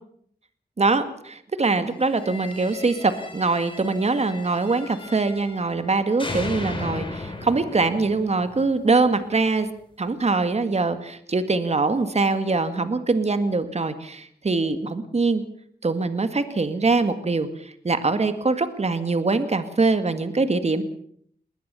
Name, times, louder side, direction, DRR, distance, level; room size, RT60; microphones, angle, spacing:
voice 1, 0.8-9.7 10.0-15.4 15.8-20.8, right 3 dB, 40° right, 10 dB, 2.0 m, -23 dB
sound 1, 2.0-5.9 6.2-9.2, left 2 dB, 30° left, 5.1 m, -36 dB
20.5 x 19.5 x 7.0 m, 0.64 s
wide cardioid pair, 90°, 17 cm